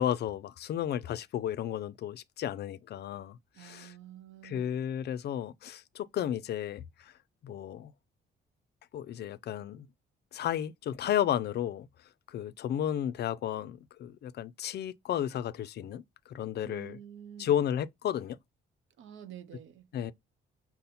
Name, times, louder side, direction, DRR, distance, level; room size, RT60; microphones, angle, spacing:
voice 1, 0.0-3.9 4.4-7.1 7.4-7.9 8.9-9.9 10.3-11.9 12.3-17.0 17.4-18.4 19.9-20.1, left 10 dB, 55° left, 0.4 m, -33 dB
voice 2, 3.5-4.8 16.6-17.5 19.0-19.9, right 9 dB, 75° right, 0.6 m, -48 dB
5.3 x 2.1 x 4.1 m
cardioid pair, 90°, 20 cm